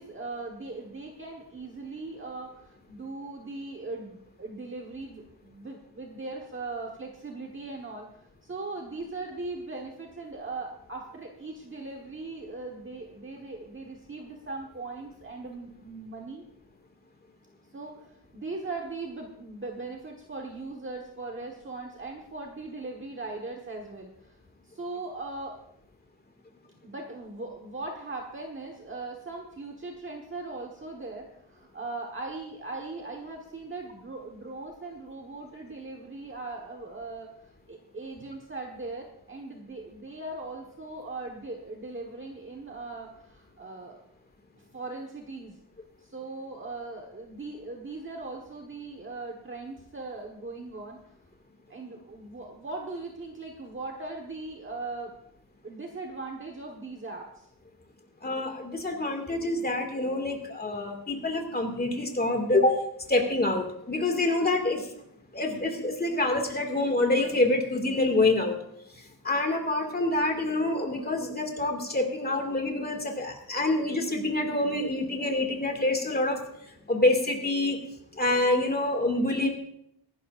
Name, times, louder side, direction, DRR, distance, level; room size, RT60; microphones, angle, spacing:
voice 1, 0.0-8.1 8.4-16.4 17.7-24.4 24.6-25.6 26.8-37.3 37.7-44.0 44.7-45.6 46.0-51.0 51.7-55.1 55.6-57.5, right 3 dB, 30° right, 0 dB, 1.3 m, -39 dB
voice 2, 58.2-62.7 63.1-64.9 65.3-68.6 69.2-76.4 76.9-77.8 78.2-79.5, left 2 dB, 20° left, 3 dB, 2.1 m, -26 dB
24.0 x 12.0 x 2.5 m, 0.76 s
wide cardioid pair, 170°, 41 cm